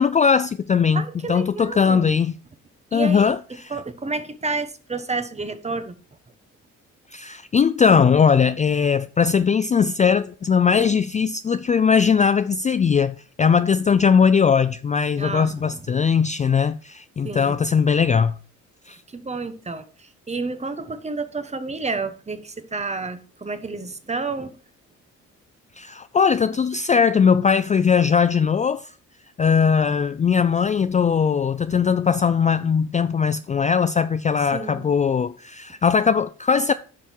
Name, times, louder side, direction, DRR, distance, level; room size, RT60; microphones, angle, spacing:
voice 1, 0.0-2.3 2.9-3.7 7.1-18.3 18.9-19.0 25.8-28.9 29.4-36.7, left 6 dB, 25° left, 0.4 m, -19 dB
voice 2, 0.9-2.1 2.9-3.4 3.7-5.9 15.2-15.8 17.2-17.6 19.1-24.5 34.5-34.9, right 3 dB, 20° right, 1.2 m, -30 dB
9.6 x 5.7 x 4.6 m
cardioid pair, 90°, 30 cm